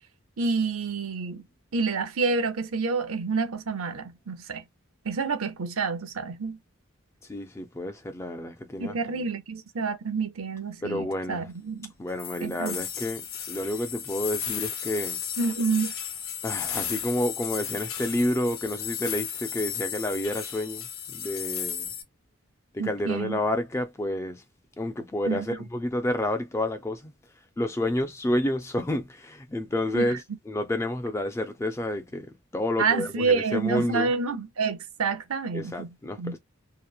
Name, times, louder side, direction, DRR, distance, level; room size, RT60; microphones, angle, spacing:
voice 1, 0.4-1.4 1.7-4.6 5.0-6.6 8.8-11.9 12.4-12.8 15.4-15.9 22.8-23.4 25.3-25.6 29.9-30.2 32.8-35.9 36.2-36.4, right 4 dB, 90° right, 0.6 m, -28 dB
voice 2, 7.3-9.0 10.8-11.5 12.0-15.2 16.4-21.9 22.7-24.4 24.8-27.1 27.6-32.3 32.5-34.1 35.5-36.4, left 1 dB, 15° left, 0.3 m, -29 dB
sound 1, 12.2-22.0, left 8 dB, 80° left, 0.6 m, -34 dB
2.9 x 2.0 x 2.3 m
head